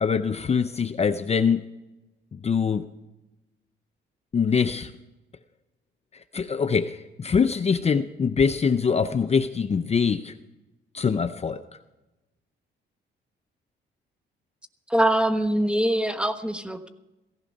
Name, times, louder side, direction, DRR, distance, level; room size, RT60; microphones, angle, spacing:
voice 1, 0.0-1.6 2.3-2.8 4.3-4.9 6.3-10.3 10.9-11.6, left 6 dB, 30° left, 11 dB, 0.6 m, -23 dB
voice 2, 14.9-16.9, right 1 dB, 5° right, 9 dB, 1.2 m, -23 dB
16.5 x 15.0 x 5.3 m, 1.0 s
cardioid pair, 90°, 20 cm